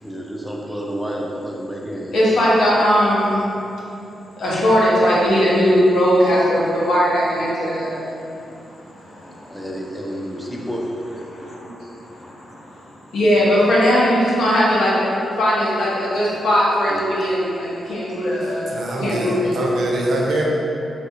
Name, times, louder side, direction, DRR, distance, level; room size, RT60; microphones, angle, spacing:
voice 1, 0.0-2.2 9.5-10.8 16.9-17.0, equal, ahead, -2 dB, 0.3 m, -30 dB
voice 2, 2.1-3.5 4.4-8.1 9.0-9.5 10.5-10.6 11.3-12.6 13.1-14.9 15.4-19.5, equal, 85° left, -7 dB, 0.7 m, -19 dB
voice 3, 18.4-20.4, right 2 dB, 75° right, -3 dB, 0.5 m, -24 dB
3.3 x 2.4 x 2.8 m, 2.8 s
wide cardioid pair, 170°, 0 cm